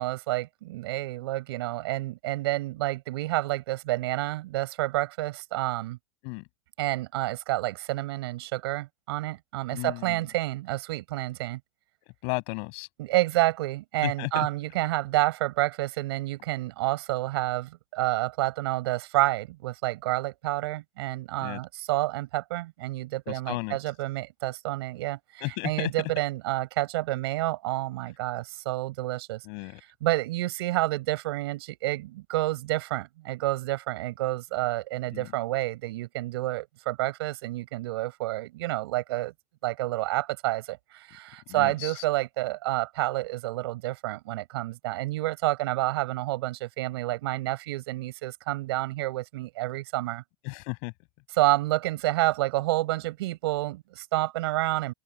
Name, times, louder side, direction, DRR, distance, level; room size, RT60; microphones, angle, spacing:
voice 1, 0.0-6.0 6.8-11.6 13.0-29.4 30.0-39.3 39.6-50.2 51.4-54.9, right 18 dB, 80° right, 5.2 m, -29 dB
voice 2, 9.7-10.2 12.2-12.9 14.0-14.5 21.4-21.6 23.3-24.0 25.4-25.9 29.4-29.8 35.1-35.3 41.5-42.0 50.4-50.9, left 34 dB, 50° left, 6.2 m, -34 dB
open air
supercardioid pair, 165°, 13 cm